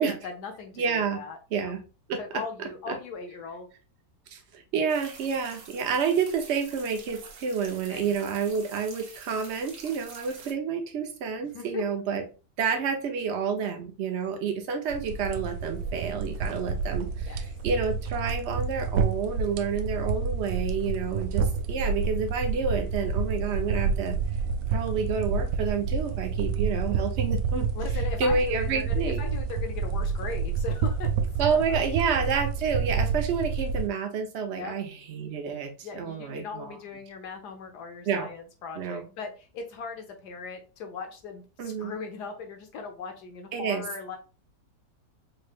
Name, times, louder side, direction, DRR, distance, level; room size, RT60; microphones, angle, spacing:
voice 1, 0.0-1.7 2.2-3.7 7.9-8.2 11.5-11.8 17.2-17.4 27.7-31.1 31.5-32.1 34.5-34.7 35.8-44.2, left 5 dB, 75° left, 4 dB, 1.4 m, -39 dB
voice 2, 0.8-1.2 1.5-1.8 2.1-2.2 2.6-2.9 4.3-12.2 12.6-24.2 24.7-27.7 28.2-29.2 31.4-36.7 38.1-38.3 38.8-39.0 41.6-41.9 43.5-43.8, right 6 dB, 50° right, 4 dB, 0.9 m, -29 dB
sound 1, 4.9-10.5, right 4 dB, 75° right, 1.5 m, -47 dB
sound 2, 14.9-33.9, right 5 dB, 90° right, 1.2 m, -29 dB
4.4 x 3.2 x 2.4 m, 0.33 s
omnidirectional pair, 1.8 m